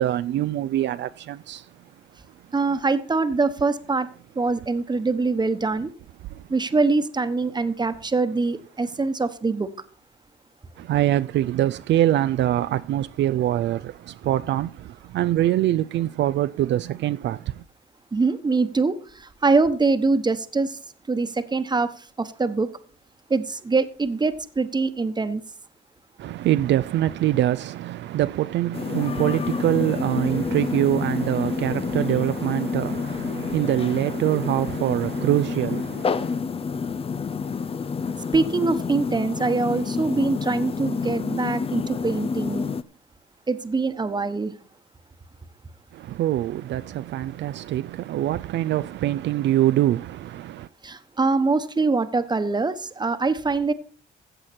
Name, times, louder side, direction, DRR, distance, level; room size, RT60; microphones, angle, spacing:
voice 1, 0.0-1.8 6.2-6.5 10.8-17.6 26.2-36.4 45.9-50.7, right 13 dB, 65° right, 0.4 m, -24 dB
voice 2, 2.5-4.1 4.3-5.9 6.5-9.7 18.1-20.8 21.1-22.7 23.3-25.4 38.3-42.7 43.5-44.5 50.8-53.7, right 3 dB, 20° right, 1.1 m, -23 dB
sound 1, 28.7-42.8, left 5 dB, 30° left, 0.5 m, -28 dB
14.5 x 7.5 x 4.3 m
cardioid pair, 90°, 20 cm